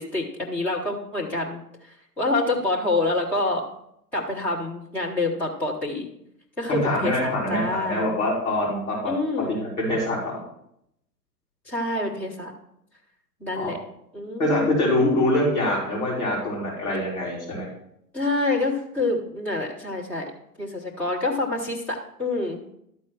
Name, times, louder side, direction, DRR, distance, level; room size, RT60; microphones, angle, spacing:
voice 1, 0.0-3.6 4.1-6.1 6.6-8.1 9.0-9.5 11.7-12.5 13.4-13.8 14.1-15.3 18.1-20.3 20.6-22.6, left 2 dB, 5° left, -5 dB, 0.4 m, -27 dB
voice 2, 6.7-9.1 9.5-10.4 13.6-13.7 14.4-17.7, left 1 dB, 65° left, -4 dB, 3.9 m, -24 dB
12.5 x 4.3 x 5.9 m, 0.76 s
figure-of-eight pair, 110°, 48 cm